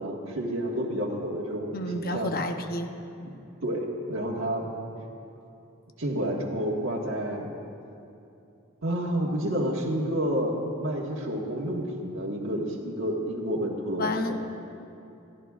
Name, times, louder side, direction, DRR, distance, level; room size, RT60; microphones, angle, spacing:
voice 1, 0.0-2.3 3.2-3.3 3.6-4.7 6.0-7.5 8.8-14.4, equal, 70° right, -4 dB, 1.6 m, -30 dB
voice 2, 1.7-2.9 14.0-14.4, left 1 dB, 45° left, 6 dB, 0.8 m, -30 dB
26.0 x 14.5 x 2.5 m, 2.7 s
head